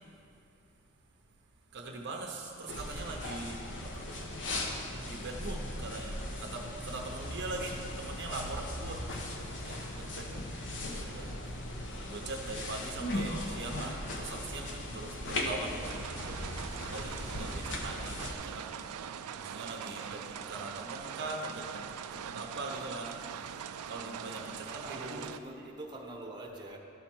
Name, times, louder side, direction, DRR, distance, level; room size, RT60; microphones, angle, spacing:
voice 1, 1.7-4.3 4.9-9.2 9.6-10.5 10.8-11.3 12.1-18.9 19.4-23.1 23.9-25.2 25.6-25.7, right 2 dB, 50° right, 1 dB, 0.7 m, -42 dB
sound 1, 2.7-18.3, left 1 dB, 55° left, 0.9 m, -38 dB
sound 2, 15.8-25.4, right 8 dB, 75° right, 0.4 m, -42 dB
voice 2, 24.6-26.8, right 1 dB, 20° right, 0 dB, 0.9 m, -44 dB
12.5 x 4.3 x 6.1 m, 2.7 s
head